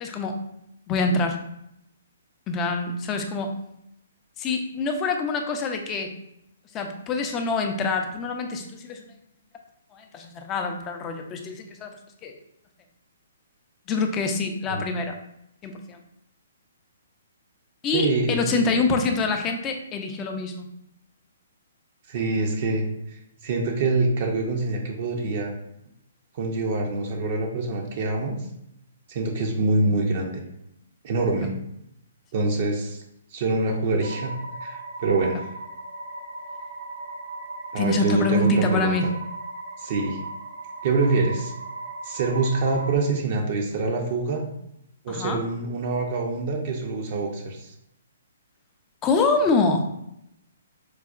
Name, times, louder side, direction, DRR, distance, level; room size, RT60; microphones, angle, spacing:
voice 1, 0.0-0.4 0.9-1.4 2.5-3.6 4.4-6.1 6.7-9.1 9.9-12.3 13.9-15.2 15.6-16.0 17.8-20.7 29.8-30.0 37.8-39.1 45.1-45.4 49.0-49.9, left 3 dB, 20° left, 4 dB, 0.4 m, -25 dB
voice 2, 17.9-18.6 22.1-22.8 23.4-25.5 26.3-28.3 29.1-30.4 31.0-31.5 32.3-33.0 33.3-34.3 34.6-35.4 37.7-38.9 39.8-40.2 40.8-41.5 42.0-44.4 45.0-47.7, right 3 dB, 45° right, 1 dB, 0.5 m, -25 dB
sound 1, 34.0-43.0, right 2 dB, 75° right, 0.9 m, -37 dB
4.6 x 2.1 x 2.4 m, 0.79 s
hypercardioid pair, 145°, 0 cm